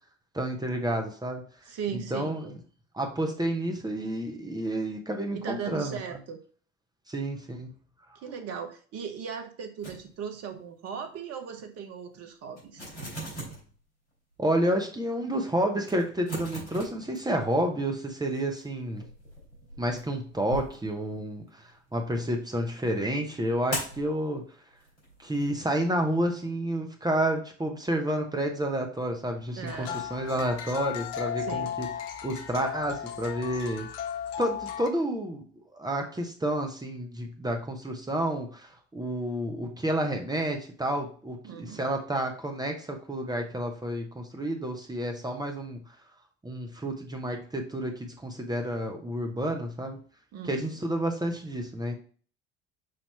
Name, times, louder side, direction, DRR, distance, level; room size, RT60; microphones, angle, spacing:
voice 1, 0.3-1.4 1.9-2.5 2.9-6.0 7.1-7.7 14.4-19.0 19.8-24.4 25.2-31.9 32.2-33.9 34.4-35.4 35.7-45.8 46.4-50.0 50.4-51.9, right 1 dB, 10° right, 3 dB, 1.1 m, -30 dB
voice 2, 1.6-2.5 5.3-6.4 8.1-12.9 29.6-30.0 31.4-31.7 41.4-41.8 50.3-50.8, right 7 dB, 45° right, 6 dB, 1.2 m, -38 dB
sound 1, 9.8-10.6 10.9-11.1 11.6-11.7 12.1-12.2 12.6-13.8 14.3-14.4 15.0-15.1 15.3-15.4 15.8-17.7 18.0-21.7 23.7-24.1 24.7-25.5, right 1 dB, 85° left, 3.3 m, -40 dB
sound 2, 29.7-34.9, left 9 dB, 65° left, 0.8 m, -35 dB
6.5 x 2.9 x 5.5 m, 0.44 s
figure-of-eight pair, 60°, 34 cm